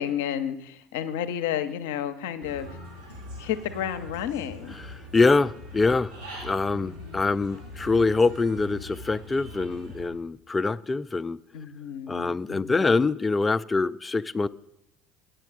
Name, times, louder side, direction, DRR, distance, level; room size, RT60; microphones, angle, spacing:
voice 1, 0.0-2.7 3.4-4.8 6.8-7.3 11.5-13.1, left 10 dB, 70° left, 10 dB, 0.6 m, -32 dB
Human voice / Bird, 2.4-10.1, left 1 dB, 90° right, 2.4 m, -42 dB
voice 2, 4.9-6.1 6.4-11.4 12.1-14.5, left 3 dB, 20° left, 17 dB, 0.3 m, -24 dB
9.7 x 7.8 x 4.6 m, 0.82 s
hypercardioid pair, 65°, 0 cm